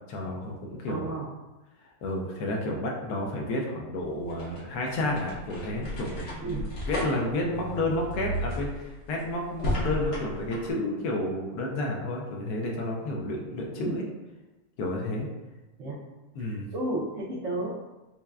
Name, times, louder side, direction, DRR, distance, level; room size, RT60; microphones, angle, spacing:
voice 1, 0.1-1.2 1.8-14.0 14.8-15.3 16.4-16.7, left 1 dB, 75° left, 0 dB, 1.1 m, -31 dB
voice 2, 0.9-1.2 6.4-6.6 13.8-14.0 15.8-16.0 16.4-17.7, right 2 dB, 65° right, -4 dB, 0.9 m, -32 dB
sound 1, 4.0-10.7, left 1 dB, 55° left, 1.0 m, -34 dB
5.5 x 2.2 x 2.3 m, 1.1 s
omnidirectional pair, 1.7 m